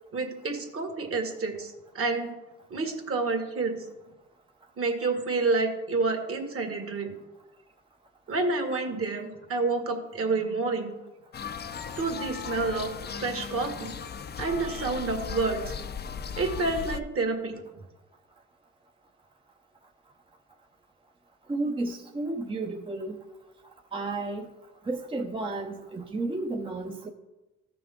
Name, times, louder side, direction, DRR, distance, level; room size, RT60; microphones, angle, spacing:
voice 1, 0.1-2.3 2.7-3.8 4.8-7.2 8.3-10.9 12.0-12.9 13.2-13.9 14.4-15.7 16.4-17.6, right 3 dB, 50° right, 4 dB, 1.9 m, -29 dB
sound 1, 11.3-17.0, left 6 dB, 35° left, 0.5 m, -37 dB
voice 2, 21.5-23.2 23.9-24.5 24.9-27.1, right 2 dB, 15° right, 2 dB, 0.7 m, -32 dB
14.5 x 6.0 x 3.6 m, 1.1 s
cardioid pair, 90°, 30 cm